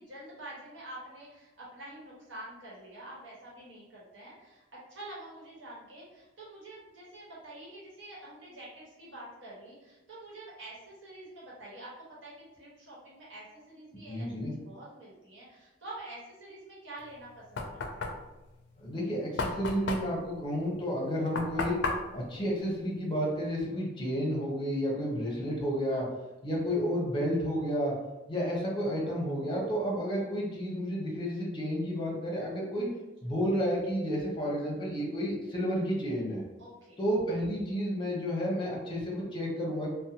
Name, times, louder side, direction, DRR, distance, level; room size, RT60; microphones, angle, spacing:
voice 1, 0.0-14.3 14.6-18.1 25.9-26.1 29.0-29.2 33.2-33.3 36.6-37.0, right 1 dB, 80° right, -7 dB, 1.1 m, -47 dB
voice 2, 14.1-14.5 18.8-21.8 22.1-26.0 26.4-27.9 28.3-32.9 33.2-36.4 37.0-39.9, equal, 25° left, -3 dB, 0.7 m, -31 dB
Knock, 17.0-23.5, left 3 dB, 65° left, 0.4 m, -36 dB
2.6 x 2.0 x 2.8 m, 1.0 s
head